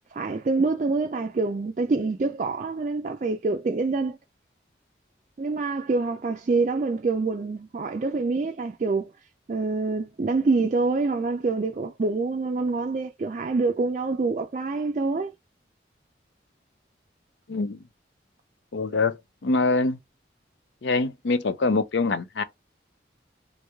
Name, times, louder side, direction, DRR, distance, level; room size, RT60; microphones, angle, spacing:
voice 1, 0.1-4.2 5.4-9.1 9.5-15.3, right 3 dB, 40° right, 0.3 m, -26 dB
voice 2, 17.5-17.8 18.7-20.0 20.8-22.4, left 3 dB, 80° left, 0.6 m, -24 dB
3.1 x 2.5 x 3.3 m
head